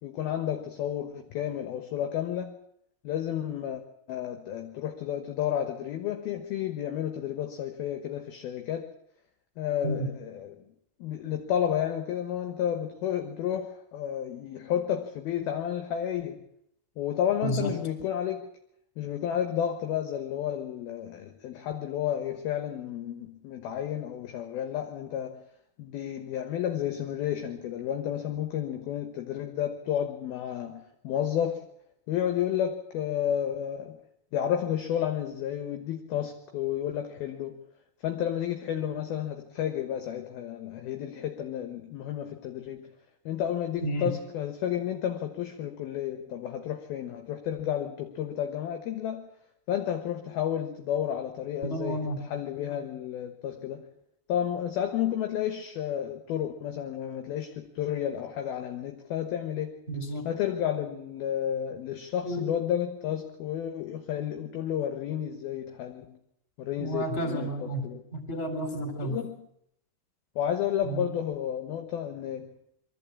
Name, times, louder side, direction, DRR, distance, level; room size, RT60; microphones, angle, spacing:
voice 1, 0.0-2.6 3.0-3.8 4.1-8.9 9.6-10.6 11.0-16.5 17.0-18.5 19.0-25.5 25.8-31.7 32.1-34.0 34.3-37.6 38.0-42.9 43.3-49.3 49.7-53.9 54.3-59.8 60.2-66.2 66.6-67.5 67.8-68.0 69.0-69.4 70.4-72.5, left 10 dB, 70° left, 6 dB, 2.6 m, -31 dB
voice 2, 17.4-17.7 43.8-44.1 51.6-52.2 59.9-60.3 62.2-62.5 66.8-69.2 70.8-71.1, right 1 dB, 15° left, 5 dB, 3.3 m, -31 dB
23.0 x 14.5 x 8.6 m, 0.75 s
omnidirectional pair, 5.5 m